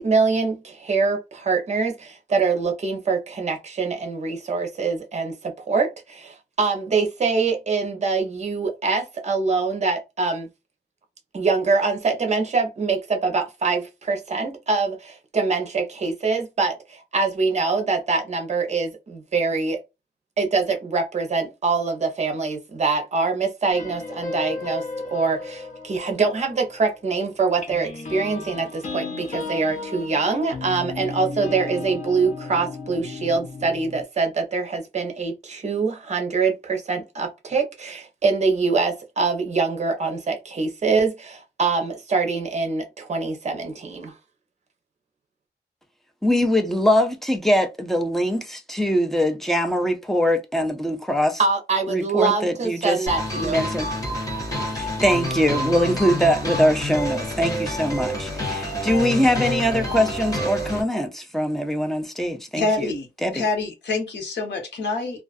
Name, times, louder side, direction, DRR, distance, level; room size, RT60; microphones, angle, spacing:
voice 1, 0.0-10.5 11.3-19.8 20.4-44.1 51.4-53.6, right 4 dB, 40° right, 0.7 m, -24 dB
sound 1, 23.7-27.1 27.6-34.0, left 3 dB, 45° left, 0.7 m, -34 dB
voice 2, 46.2-51.4 51.9-53.0 53.4-53.9 54.7-62.9 63.2-63.4, equal, ahead, 0.4 m, -22 dB
sound 2, 53.1-60.8, equal, 20° left, 0.9 m, -28 dB
voice 3, 62.5-65.2, left 3 dB, 80° left, 1.0 m, -26 dB
2.4 x 2.3 x 2.4 m
wide cardioid pair, 180°, 18 cm